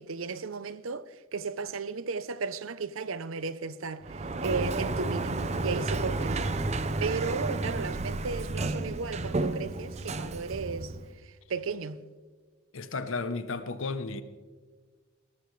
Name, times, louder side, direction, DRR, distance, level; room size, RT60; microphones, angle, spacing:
voice 1, 0.0-6.6 7.0-10.9 11.2-12.1, right 4 dB, 80° right, 0.6 m, -35 dB
Sliding door, 4.0-11.2, right 2 dB, 35° right, 0.6 m, -32 dB
voice 2, 12.7-14.2, left 3 dB, 75° left, 0.8 m, -33 dB
18.5 x 14.5 x 3.2 m
head